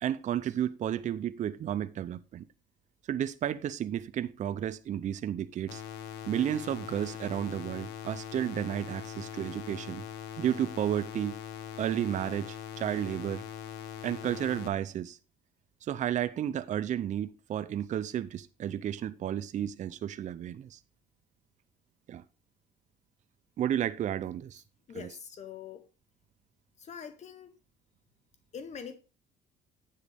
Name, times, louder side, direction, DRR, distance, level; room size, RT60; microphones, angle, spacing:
voice 1, 0.0-2.4 3.1-5.8 6.3-10.0 10.4-11.3 11.8-13.4 14.0-15.2 15.8-20.8 22.1-22.2 23.6-24.6 24.9-25.1, right 10 dB, 45° right, 0.5 m, -32 dB
sound 1, 5.7-14.7, left 9 dB, 85° left, 1.2 m, -42 dB
voice 2, 24.9-25.8 26.8-27.5 28.5-29.0, left 6 dB, 45° left, 0.8 m, -43 dB
9.6 x 7.6 x 3.4 m
cardioid pair, 110°, 17 cm